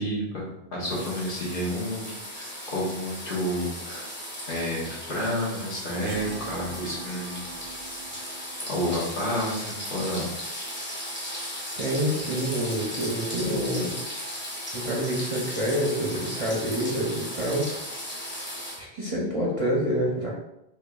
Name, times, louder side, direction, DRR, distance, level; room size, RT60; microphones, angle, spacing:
voice 1, 0.0-4.1 4.5-7.6 8.7-10.8, equal, 60° left, -6 dB, 1.4 m, -30 dB
sound 1, 0.8-18.8, equal, 15° left, 0.7 m, -36 dB
sound 2, 4.8-10.5, right 4 dB, 75° right, 0.8 m, -45 dB
voice 2, 11.8-14.0 14.7-17.8 18.2-18.3 18.8-20.3, equal, 40° right, -4 dB, 0.6 m, -27 dB
4.9 x 2.4 x 2.3 m, 0.86 s
omnidirectional pair, 1.0 m